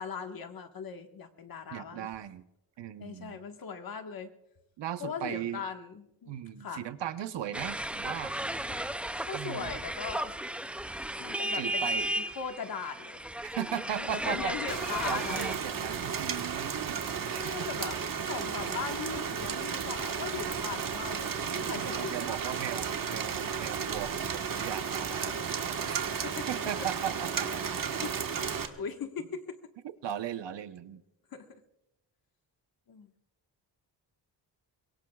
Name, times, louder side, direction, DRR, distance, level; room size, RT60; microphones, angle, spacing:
voice 1, 0.0-2.1 3.0-4.3 5.0-6.3 6.6-6.8 9.3-10.3 11.2-13.2 14.0-15.5 17.3-18.0 18.2-22.3 25.3-25.4 26.2-26.5 27.7-28.1 28.5-29.4 31.3-31.4 32.9-33.1, left 6 dB, 55° left, 5 dB, 1.6 m, -39 dB
voice 2, 1.7-2.4 2.8-3.4 4.8-5.6 6.3-8.3 9.3-9.8 11.5-12.1 13.4-14.5 15.0-17.8 21.5-25.3 25.7-26.2 26.5-27.5 29.8-31.0, right 10 dB, 75° right, 10 dB, 1.0 m, -38 dB
sound 1, 7.5-15.6, right 1 dB, 5° right, 0.4 m, -35 dB
Rain, 14.7-28.7, right 6 dB, 50° right, 1.5 m, -33 dB
24.5 x 22.0 x 2.4 m, 0.89 s
wide cardioid pair, 125°, 43 cm